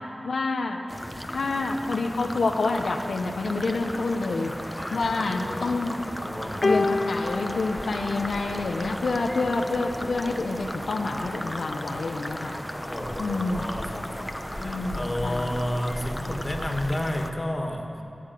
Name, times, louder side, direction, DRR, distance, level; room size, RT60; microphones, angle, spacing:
voice 1, 0.2-0.8 1.3-4.5 4.9-6.0 6.6-12.5 13.2-13.7 14.6-15.5, left 3 dB, 90° left, 2 dB, 0.9 m, -28 dB
sound 1, 0.9-17.3, equal, 5° left, 0.8 m, -35 dB
voice 2, 4.8-5.8 6.2-6.6 12.9-18.0, left 1 dB, 25° left, 2 dB, 1.9 m, -32 dB
sound 2, 6.6-9.1 10.1-10.3, left 3 dB, 50° left, 0.3 m, -29 dB
14.5 x 9.6 x 8.3 m, 2.6 s
wide cardioid pair, 55°, 0 cm